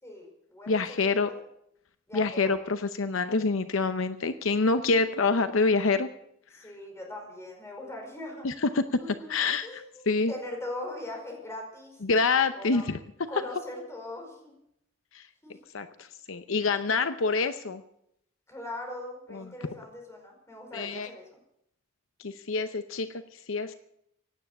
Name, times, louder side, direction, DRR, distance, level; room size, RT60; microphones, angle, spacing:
voice 1, 0.0-0.7 1.1-1.3 2.1-2.5 6.5-8.5 9.0-9.3 9.6-12.8 13.3-14.5 15.4-15.6 18.5-21.3, left 1 dB, 15° left, 1 dB, 5.1 m, -40 dB
voice 2, 0.7-1.3 2.1-6.1 8.4-8.8 9.3-10.3 12.0-13.0 15.1-15.2 15.7-17.8 19.3-19.5 20.7-21.1 22.2-23.1 23.5-23.7, left 4 dB, 70° left, 10 dB, 0.8 m, -26 dB
17.0 x 9.5 x 8.6 m, 0.76 s
head